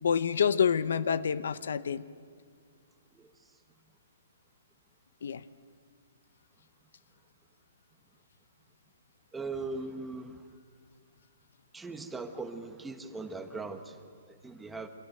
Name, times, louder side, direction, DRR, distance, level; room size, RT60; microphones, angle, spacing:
voice 1, 0.0-2.0 5.2-5.4, left 7 dB, 70° left, 15 dB, 1.0 m, -27 dB
voice 2, 9.3-10.4 11.7-14.9, right 3 dB, 5° right, 7 dB, 1.2 m, -39 dB
29.0 x 26.0 x 7.9 m, 2.1 s
hypercardioid pair, 165°, 0 cm